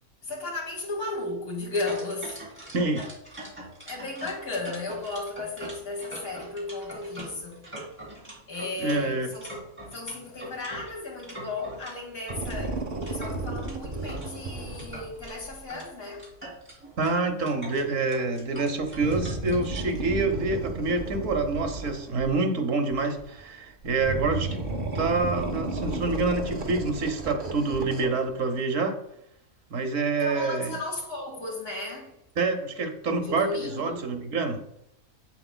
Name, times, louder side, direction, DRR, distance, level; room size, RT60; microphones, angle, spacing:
voice 1, 0.2-2.4 3.9-7.6 8.5-9.5 9.9-16.3 30.2-32.1 33.2-34.2, left 2 dB, 75° left, 2.6 m, -35 dB
sound 1, 1.9-11.9 12.3-14.3 14.7-15.3 15.7-20.0, right 1 dB, 10° right, 2.7 m, -42 dB
voice 2, 2.7-3.1 8.8-9.3 17.0-24.6 24.9-29.0 29.7-30.7 32.4-34.6, right 3 dB, 65° right, 1.3 m, -27 dB
sound 2, 12.3-15.6 18.8-22.4 22.9-23.4 23.8-28.3 28.6-28.7, right 2 dB, 40° right, 1.0 m, -33 dB
8.0 x 7.6 x 2.2 m
omnidirectional pair, 1.4 m